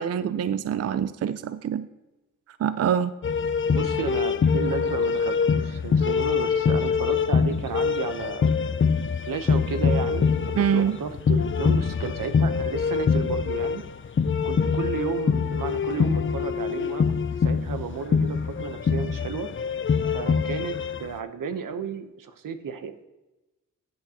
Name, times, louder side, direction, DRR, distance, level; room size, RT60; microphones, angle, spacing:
voice 1, 0.0-1.9 2.6-3.1 10.6-11.0, right 8 dB, 50° right, 14 dB, 0.4 m, -25 dB
sound 1, 3.2-21.1, left 6 dB, 40° left, 0.5 m, -24 dB
voice 2, 3.7-8.5 9.2-13.8 14.4-19.5 20.1-22.9, right 6 dB, 90° right, 9 dB, 0.9 m, -33 dB
14.5 x 8.0 x 2.8 m, 1.0 s
wide cardioid pair, 100°, 32 cm